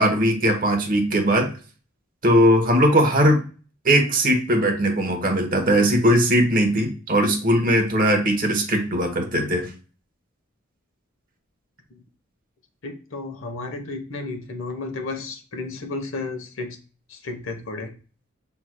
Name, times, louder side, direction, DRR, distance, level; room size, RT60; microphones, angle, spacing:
voice 1, 0.0-1.5 2.2-3.4 3.8-9.7, equal, 40° right, 4 dB, 1.0 m, -19 dB
voice 2, 12.8-16.8 17.1-17.9, left 3 dB, 80° left, 5 dB, 1.0 m, -33 dB
6.0 x 3.3 x 2.2 m, 0.36 s
head